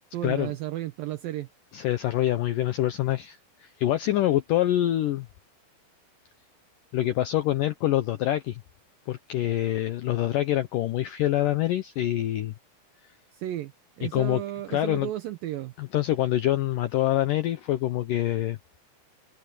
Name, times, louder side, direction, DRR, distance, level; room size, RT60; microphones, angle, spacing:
voice 1, 0.1-1.5 13.3-13.7 14.0-15.7, right 14 dB, 75° right, 2.1 m, -33 dB
voice 2, 1.7-5.3 6.9-8.6 9.1-12.5 14.0-14.4 14.7-15.1 15.8-18.6, left 14 dB, 80° left, 1.9 m, -25 dB
omnidirectional pair, 5.0 m